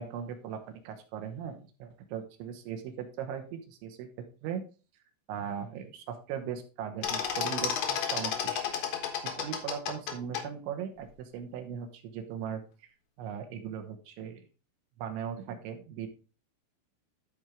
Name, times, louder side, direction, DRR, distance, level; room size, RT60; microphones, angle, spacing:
voice 1, 0.0-4.6 5.3-8.6 9.4-12.9 13.2-14.4 15.0-16.1, right 8 dB, 75° right, 6 dB, 3.3 m, -39 dB
sound 1, 7.0-10.4, left 8 dB, 65° left, 2.2 m, -31 dB
13.5 x 4.6 x 3.6 m, 0.34 s
omnidirectional pair, 5.7 m